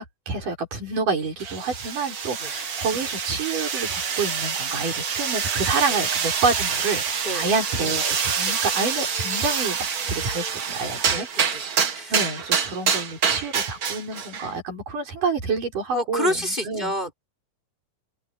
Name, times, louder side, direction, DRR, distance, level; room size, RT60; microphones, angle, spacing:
voice 1, 0.0-9.8 10.1-11.3 11.6-16.9, right 4 dB, 85° right, 7.3 m, -28 dB
sound 1, 1.4-14.5, right 6 dB, 55° right, 1.0 m, -26 dB
voice 2, 11.1-11.7 11.9-12.1 15.9-17.1, left 1 dB, 15° left, 4.5 m, -28 dB
open air
omnidirectional pair, 3.6 m